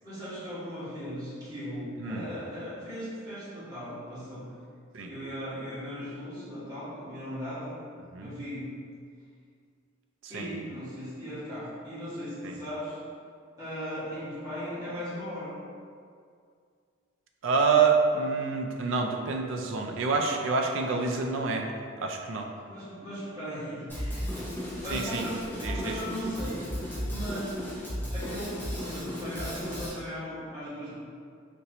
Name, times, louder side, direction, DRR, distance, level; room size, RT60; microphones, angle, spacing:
voice 1, 0.0-4.5 5.1-7.7 8.1-8.7 10.3-13.0 13.6-15.5 22.6-24.3 24.6-27.6 28.1-30.9, equal, 20° right, -12 dB, 1.4 m, -38 dB
voice 2, 17.4-21.7 22.0-22.5 24.9-25.2 25.6-26.0, right 4 dB, 70° right, 2 dB, 0.4 m, -27 dB
Drum kit, 23.9-29.9, equal, 10° left, 0.9 m, -35 dB
4.0 x 2.6 x 2.9 m, 2.2 s
head